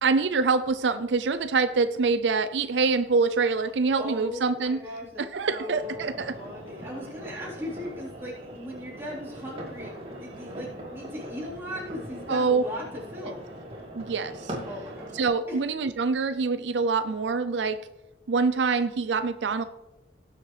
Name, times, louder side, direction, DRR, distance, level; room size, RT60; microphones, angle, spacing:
voice 1, 0.0-4.8 5.2-6.3 12.3-12.6 13.9-14.6 15.1-17.8 18.3-19.6, right 4 dB, 75° right, 11 dB, 0.5 m, -25 dB
voice 2, 3.6-12.8 13.1-13.4 14.7-15.1 15.5-15.6, left 1 dB, 15° right, -6 dB, 3.8 m, -38 dB
sound 1, 5.8-15.3, right 1 dB, 35° right, 2.4 m, -41 dB
18.0 x 7.4 x 3.3 m, 0.98 s
head